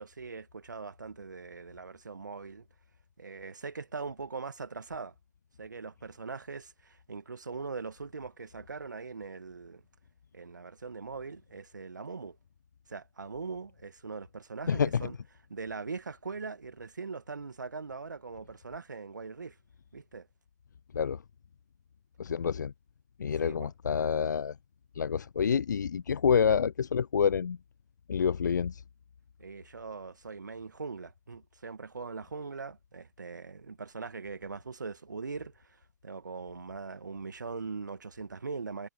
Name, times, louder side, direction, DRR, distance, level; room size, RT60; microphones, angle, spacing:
voice 1, 0.0-2.7 3.2-5.1 5.6-9.8 10.3-12.4 12.9-15.2 15.5-19.6 19.9-20.3 23.4-23.7 29.4-38.9, right 4 dB, 85° right, 2.0 m, -41 dB
voice 2, 14.7-15.0 20.9-21.2 22.2-22.7 23.2-24.5 25.0-27.6 28.1-28.8, left 7 dB, 80° left, 0.4 m, -27 dB
figure-of-eight pair, 110°, 10 cm